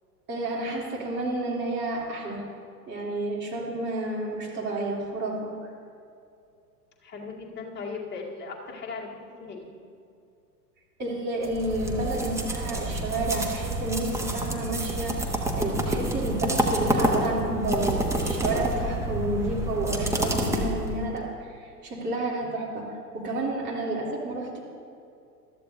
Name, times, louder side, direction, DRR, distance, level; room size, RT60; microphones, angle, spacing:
voice 1, 0.3-2.4 2.9-5.5 11.0-22.9 23.1-24.6, right 2 dB, 20° right, -4 dB, 3.2 m, -30 dB
voice 2, 7.0-9.7, left 4 dB, 20° left, -3 dB, 2.4 m, -38 dB
sound 1, 11.4-21.2, right 1 dB, 5° right, 1.2 m, -28 dB
21.0 x 13.5 x 2.7 m, 2.5 s
figure-of-eight pair, 95°, 48 cm